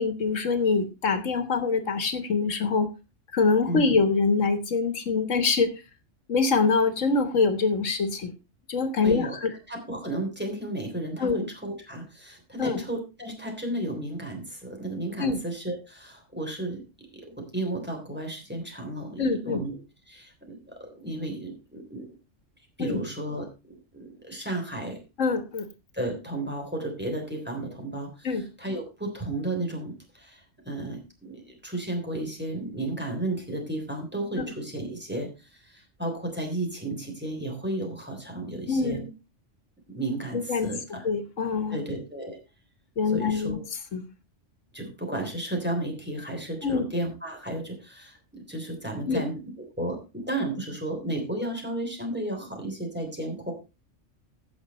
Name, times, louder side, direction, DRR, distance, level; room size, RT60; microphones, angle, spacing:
voice 1, 0.0-2.9 3.3-5.7 6.3-8.3 8.7-9.5 11.2-11.5 12.6-12.8 15.2-15.4 19.2-19.6 22.8-23.0 25.2-25.7 28.2-28.4 38.7-39.1 40.3-40.7 41.0-41.8 43.0-43.6 43.9-44.1 46.6-46.8 49.1-49.2, left 4 dB, 80° left, 9 dB, 1.7 m, -24 dB
voice 2, 9.0-16.8 17.1-19.8 20.1-22.1 22.8-23.5 23.9-25.0 25.9-39.0 39.9-41.1 41.7-42.4 43.1-43.6 44.7-49.4 49.8-53.5, right 1 dB, 10° right, 1 dB, 3.4 m, -33 dB
15.5 x 6.3 x 4.2 m, 0.29 s
omnidirectional pair, 1.3 m